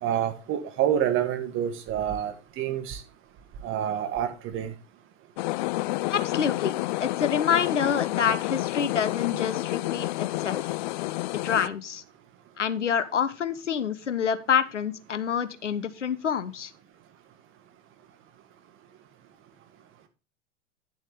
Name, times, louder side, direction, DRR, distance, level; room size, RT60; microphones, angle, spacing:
voice 1, 0.0-3.0 3.6-4.7, right 10 dB, 35° right, 7 dB, 1.9 m, -27 dB
sound 1, 5.4-11.7, left 18 dB, 40° left, 0.4 m, -29 dB
voice 2, 6.1-10.7 11.4-12.0 12.6-16.7, left 7 dB, 80° left, 14 dB, 0.9 m, -27 dB
10.5 x 7.2 x 3.7 m, 0.33 s
figure-of-eight pair, 90°, 36 cm